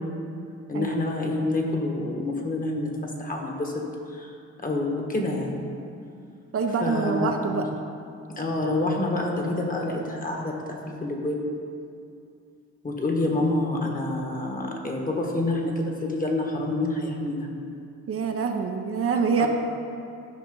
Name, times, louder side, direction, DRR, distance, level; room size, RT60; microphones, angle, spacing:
voice 1, 0.7-3.8 4.1-4.3 4.6-5.5 6.8-7.7 8.3-11.4 12.8-17.5 19.4-19.5, left 2 dB, 30° left, 1 dB, 1.5 m, -27 dB
voice 2, 6.5-7.6 18.1-19.5, right 5 dB, 50° right, 3 dB, 0.7 m, -25 dB
12.5 x 5.0 x 3.9 m, 2.5 s
cardioid pair, 90°, 30 cm